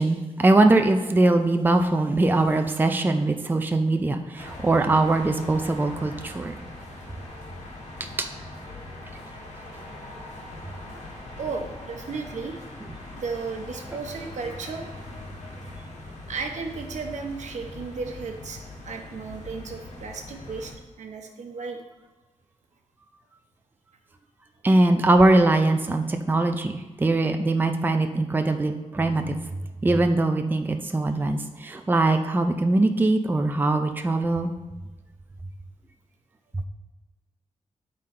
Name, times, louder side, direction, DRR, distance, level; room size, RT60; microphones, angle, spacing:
voice 1, 0.0-6.5 8.2-8.3 24.6-29.4 29.8-34.5, right 2 dB, 15° right, 6 dB, 0.4 m, -21 dB
sound 1, 4.4-20.7, left 1 dB, 75° left, 1.8 m, -41 dB
voice 2, 11.4-12.7 13.2-14.8 15.8-15.9 16.3-21.8, right 4 dB, 90° right, 3 dB, 0.9 m, -34 dB
10.0 x 3.8 x 4.3 m, 1.2 s
wide cardioid pair, 135°, 12 cm